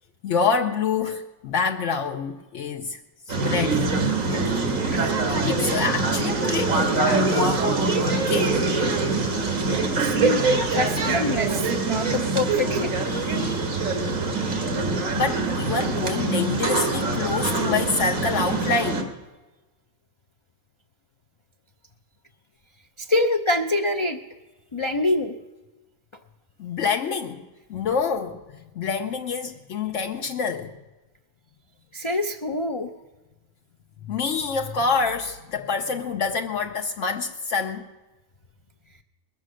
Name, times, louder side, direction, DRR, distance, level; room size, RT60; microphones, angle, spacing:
voice 1, 0.2-3.0 3.3-4.0 4.3-8.6 9.2-9.3 13.1-13.7 15.1-19.2 26.6-30.8 34.1-37.9, left 5 dB, 70° left, 1.0 m, -27 dB
sound 1, 3.3-19.0, right 3 dB, 85° right, 2.0 m, -24 dB
voice 2, 10.0-12.9 23.0-24.2 24.7-25.3 31.9-32.9, left 2 dB, 40° left, 0.4 m, -25 dB
21.0 x 7.4 x 6.3 m
omnidirectional pair, 1.4 m